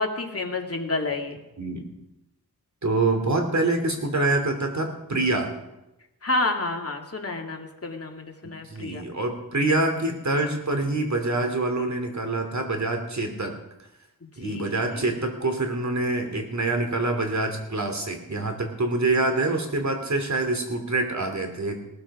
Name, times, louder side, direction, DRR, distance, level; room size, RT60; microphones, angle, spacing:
voice 1, 0.0-1.4 6.2-9.0 14.4-15.1, left 2 dB, 40° left, 2 dB, 2.4 m, -29 dB
voice 2, 2.8-5.5 8.6-13.5 14.4-21.9, right 2 dB, 45° right, 5 dB, 3.1 m, -26 dB
18.5 x 13.5 x 5.0 m, 0.94 s
wide cardioid pair, 70°, 38 cm